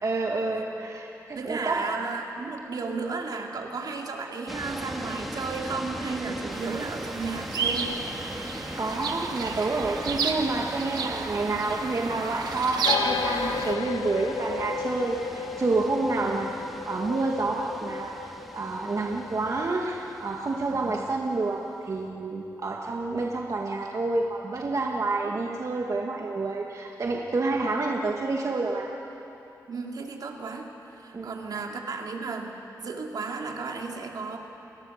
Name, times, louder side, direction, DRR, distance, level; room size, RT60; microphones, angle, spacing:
voice 1, 0.0-1.8 8.5-16.5 16.9-28.9 31.1-31.6, right 3 dB, 50° right, -1 dB, 1.9 m, -29 dB
voice 2, 1.3-8.0 16.2-16.5 20.7-20.9 27.6-27.7 29.7-30.7 31.0-32.5 32.8-34.4, right 4 dB, 70° right, 1 dB, 2.9 m, -34 dB
sound 1, 4.5-21.8, equal, ahead, 2.1 m, -40 dB
sound 2, 6.5-13.7, right 5 dB, 90° right, 1.7 m, -32 dB
sound 3, 12.8-20.1, left 6 dB, 90° left, 0.7 m, -33 dB
30.0 x 21.0 x 6.6 m, 3.0 s
wide cardioid pair, 85°, 7 cm